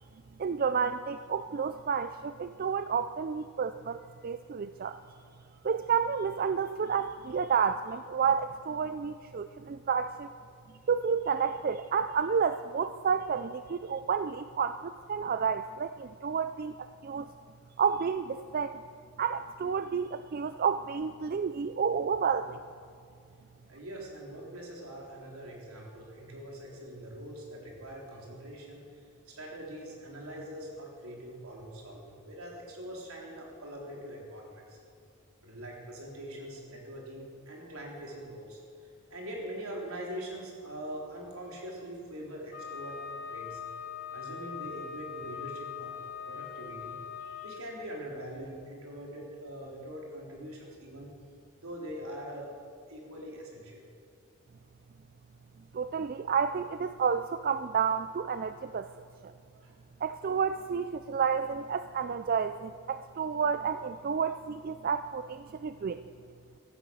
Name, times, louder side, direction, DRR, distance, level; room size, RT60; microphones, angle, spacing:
voice 1, 0.4-5.0 5.6-10.3 10.9-17.3 17.8-18.8 19.2-22.6 55.7-58.9 59.2-59.3 60.0-66.0, right 6 dB, 40° right, 11 dB, 0.3 m, -30 dB
voice 2, 23.7-34.8 35.4-38.6 39.1-43.0 43.3-43.6 44.1-51.1 51.6-52.5 52.9-53.8 59.6-59.7, equal, 75° right, -1 dB, 3.8 m, -43 dB
Wind instrument woodwind instrument, 42.5-47.6, left 7 dB, 40° left, 0.9 m, -41 dB
16.5 x 13.0 x 6.4 m, 2.3 s
head